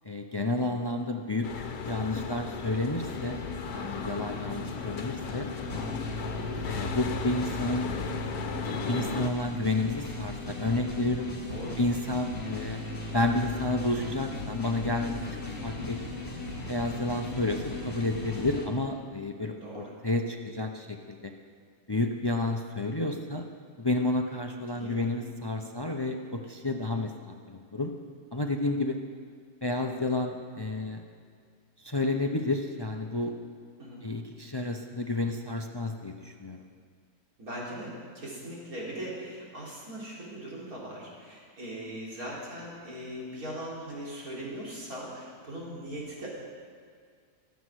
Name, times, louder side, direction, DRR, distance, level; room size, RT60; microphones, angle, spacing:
voice 1, 0.0-3.4 3.7-5.5 6.6-7.9 8.6-11.3 11.8-12.8 13.1-16.0 16.7-21.3 21.9-23.4 23.8-27.9 28.3-29.0 29.6-31.0 31.8-33.3 34.0-36.7, left 2 dB, 30° left, 4 dB, 0.4 m, -31 dB
sound 1, 1.4-9.3, left 5 dB, 70° left, 1.5 m, -36 dB
sound 2, 3.0-18.7, left 2 dB, 50° left, 2.6 m, -38 dB
voice 2, 11.4-11.8 15.6-15.9 19.6-19.9 24.7-25.1 33.8-34.0 37.4-46.3, right 1 dB, 60° right, -5 dB, 4.2 m, -40 dB
23.0 x 8.0 x 6.4 m, 2.1 s
omnidirectional pair, 1.7 m